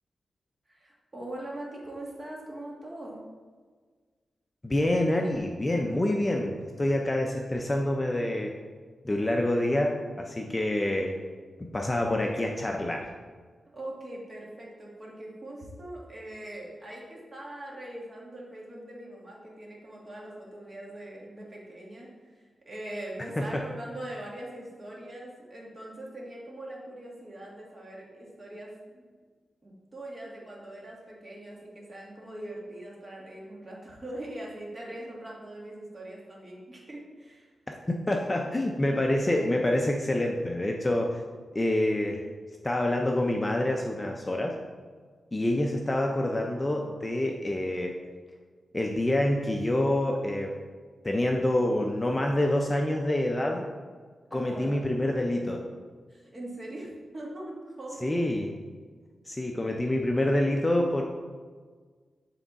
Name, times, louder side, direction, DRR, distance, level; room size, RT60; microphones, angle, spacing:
voice 1, 0.7-3.2 13.7-29.0 29.6-37.5 54.3-54.9 56.1-58.3, right 1 dB, 30° right, -3 dB, 1.6 m, -42 dB
voice 2, 4.6-8.6 9.0-11.2 11.6-13.1 23.4-23.6 38.1-41.2 41.5-42.2 42.6-44.6 45.3-48.0 48.7-50.5 51.0-53.7 54.3-55.6 58.0-58.5 59.3-61.0, left 1 dB, 20° left, 1 dB, 0.5 m, -27 dB
8.3 x 3.5 x 4.0 m, 1.5 s
wide cardioid pair, 130°, 0 cm